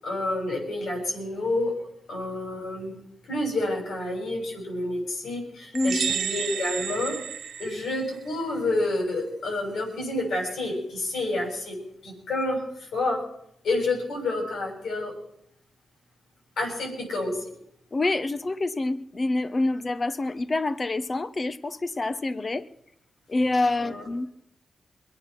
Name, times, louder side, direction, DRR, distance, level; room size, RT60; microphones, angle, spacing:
voice 1, 0.0-1.8 2.1-2.9 3.3-7.2 7.6-11.8 12.0-13.2 13.6-15.1 16.6-17.4 23.8-24.0, left 2 dB, 80° left, 0 dB, 6.9 m, -29 dB
voice 2, 5.7-6.2 17.9-22.6 23.3-24.3, left 2 dB, 35° left, 12 dB, 1.0 m, -27 dB
sound 1, 5.7-8.3, right 8 dB, 80° right, 0.5 m, -31 dB
22.5 x 8.7 x 6.1 m, 0.74 s
cardioid pair, 65°, 0 cm